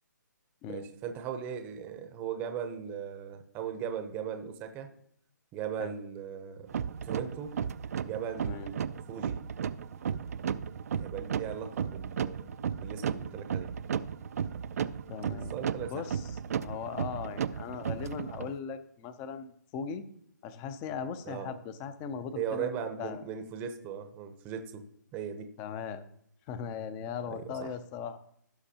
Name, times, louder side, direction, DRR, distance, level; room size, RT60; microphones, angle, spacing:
voice 1, 0.7-4.9 5.5-6.7 7.0-7.5 8.0-9.4 11.0-13.7 15.5-16.0 21.3-21.5 22.4-24.8 25.1-25.5 27.3-27.7, right 8 dB, 15° right, 7 dB, 0.7 m, -38 dB
sound 1, 6.7-18.5, right 7 dB, 50° right, 0.4 m, -34 dB
voice 2, 15.1-15.5 15.9-16.3 16.6-20.0 20.4-22.7 23.0-23.2 25.6-26.0 26.5-28.2, left 7 dB, 20° left, 12 dB, 0.5 m, -38 dB
17.0 x 5.9 x 2.9 m, 0.69 s
hypercardioid pair, 155°, 10 cm